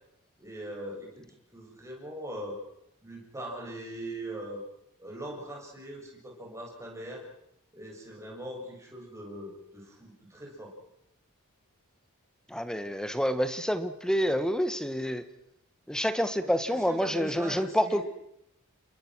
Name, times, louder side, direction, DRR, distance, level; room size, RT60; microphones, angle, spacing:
voice 1, 0.4-2.6 3.0-4.6 5.0-7.2 7.7-10.7 16.4-18.0, right 1 dB, 15° right, -2 dB, 7.6 m, -41 dB
voice 2, 12.5-15.2 15.9-18.0, equal, 5° left, 10 dB, 1.4 m, -28 dB
29.5 x 22.5 x 6.3 m, 0.81 s
head